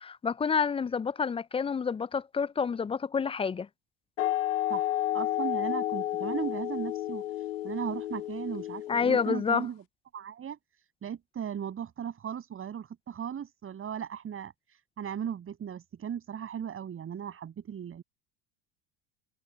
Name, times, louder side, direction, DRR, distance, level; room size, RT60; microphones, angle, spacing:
voice 1, 0.0-3.7 8.9-9.7, left 6 dB, 15° left, 0.6 m, -28 dB
sound 1, 4.2-9.6, left 13 dB, 75° left, 2.4 m, -32 dB
voice 2, 4.7-9.8 10.1-18.0, right 8 dB, 35° right, 7.5 m, -37 dB
hypercardioid pair, 80°, 39 cm